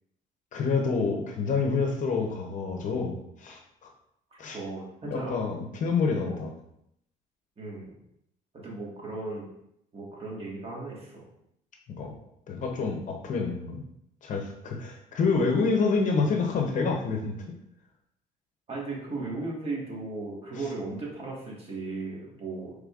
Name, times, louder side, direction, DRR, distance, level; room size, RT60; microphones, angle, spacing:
voice 1, 0.5-3.2 3.4-3.9 4.4-4.6 5.0-6.5 12.0-12.1 12.5-13.8 14.2-17.4, left 4 dB, 50° left, 2 dB, 0.7 m, -27 dB
voice 2, 4.5-5.4 6.2-6.5 7.6-8.0 8.5-9.5 9.9-11.2 18.7-22.7, right 3 dB, 35° right, -3 dB, 1.5 m, -36 dB
5.0 x 3.3 x 2.4 m, 0.77 s
cardioid pair, 110°, 17 cm